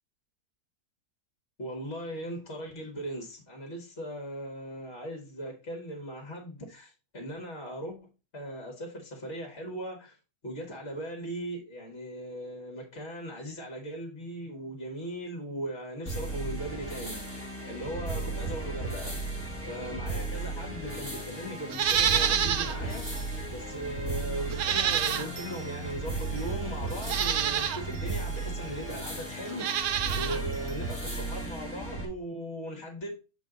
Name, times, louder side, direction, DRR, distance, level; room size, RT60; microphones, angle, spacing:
voice 1, 1.6-8.0 8.3-10.2 10.4-19.2 19.7-23.2 23.5-33.1, right 1 dB, 45° left, 1.8 m, -38 dB
sound 1, 16.1-32.1, right 2 dB, 10° left, 1.4 m, -35 dB
Livestock farm animals working animals, 21.7-22.8 23.2-23.3 24.5-25.5 26.4-26.5 27.0-27.8 29.5-30.4 30.7-30.8, right 9 dB, 75° right, 1.1 m, -27 dB
7.4 x 4.0 x 3.7 m
omnidirectional pair, 1.6 m